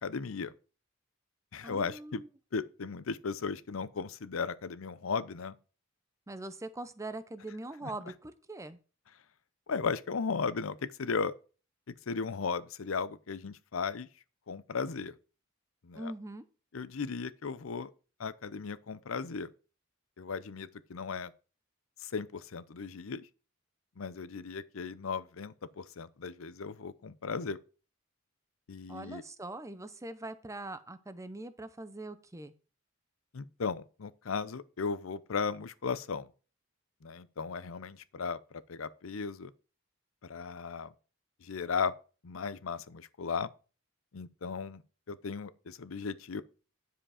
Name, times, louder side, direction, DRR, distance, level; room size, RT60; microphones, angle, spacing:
voice 1, 0.0-0.5 1.5-2.2 2.5-5.5 7.8-7.9 9.7-11.3 11.9-14.1 14.5-15.1 15.8-16.1 16.7-17.9 18.2-19.5 20.2-21.3 22.0-23.3 24.0-27.6 28.7-29.2 33.3-36.3 37.0-39.5 40.2-40.9 41.4-41.9 42.2-43.5 44.1-44.8 45.1-46.4, left 5 dB, 80° left, 0.6 m, -36 dB
voice 2, 1.6-2.3 6.3-8.8 15.9-16.4 28.9-32.5, right 2 dB, 15° right, 0.7 m, -42 dB
10.0 x 5.0 x 4.9 m
head